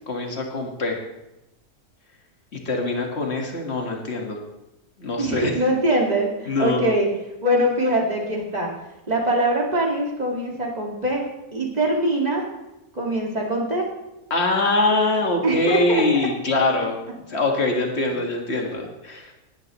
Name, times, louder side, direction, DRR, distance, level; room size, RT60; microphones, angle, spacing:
voice 1, 0.1-1.0 2.5-4.4 5.0-5.5 6.5-6.8 14.3-17.0 17.3-19.3, left 2 dB, 45° left, 1 dB, 2.0 m, -23 dB
voice 2, 5.2-7.1 7.4-8.7 9.1-12.5 12.9-13.9 15.4-16.1, right 1 dB, 25° right, -1 dB, 2.2 m, -23 dB
18.5 x 10.5 x 3.1 m, 0.93 s
omnidirectional pair, 1.6 m